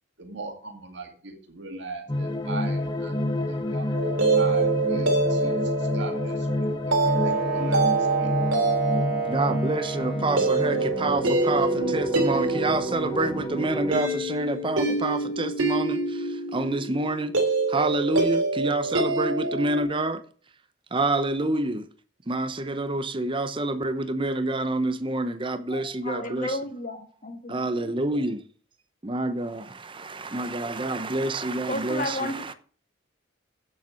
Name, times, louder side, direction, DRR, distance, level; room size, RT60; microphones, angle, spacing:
voice 1, 0.2-8.3, right 3 dB, 60° right, 2.2 m, -40 dB
sound 1, 2.1-13.9, left 1 dB, 20° left, 1.2 m, -29 dB
sound 2, 3.9-19.8, right 3 dB, 90° right, 3.1 m, -26 dB
Wind instrument woodwind instrument, 7.0-11.0, right 4 dB, 5° right, 2.4 m, -36 dB
voice 2, 9.3-17.3 17.7-20.2 20.9-21.9 22.3-26.6 27.5-28.4 29.0-32.5, right 2 dB, 25° right, 0.7 m, -27 dB
voice 3, 25.7-28.2 31.7-32.5, left 1 dB, 40° left, 1.6 m, -34 dB
8.7 x 7.4 x 6.3 m
head